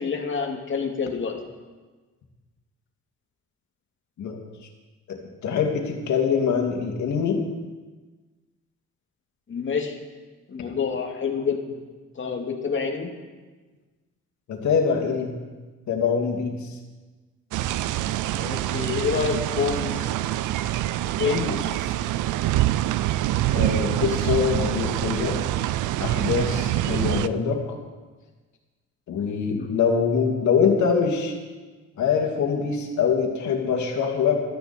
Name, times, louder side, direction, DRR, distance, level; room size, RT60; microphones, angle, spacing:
voice 1, 0.0-1.4 9.5-10.0 10.5-11.8 12.2-13.1 18.4-20.1 21.2-21.6 29.5-29.7, left 5 dB, 40° left, 2 dB, 2.3 m, -27 dB
voice 2, 5.1-7.4 14.5-15.3 15.9-16.6 21.2-21.6 21.8-21.9 23.5-25.4 26.0-27.6 29.1-31.3 32.0-34.4, left 6 dB, 70° left, 1 dB, 2.6 m, -24 dB
sound 1, 17.5-27.3, right 14 dB, 80° right, 0.5 m, -25 dB
14.5 x 13.0 x 4.4 m, 1.3 s
cardioid pair, 90°, 30 cm